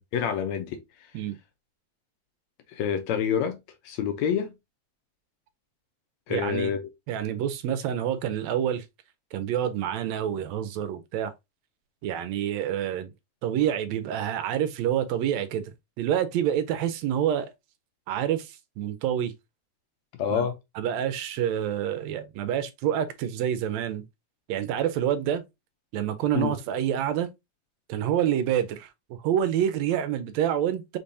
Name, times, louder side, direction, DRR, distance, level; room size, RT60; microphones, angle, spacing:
voice 1, 0.1-0.8 2.7-3.6 3.8-4.5 6.3-6.8 20.2-20.5 26.3-26.6, left 8 dB, 75° left, 1.8 m, -27 dB
voice 2, 6.3-6.7 7.1-8.8 9.3-11.3 12.0-13.1 13.4-17.5 18.1-19.3 20.3-20.5 20.8-24.0 24.5-25.4 25.9-27.3 27.9-31.0, right 10 dB, 75° right, 1.7 m, -27 dB
5.3 x 3.3 x 2.6 m
omnidirectional pair, 3.5 m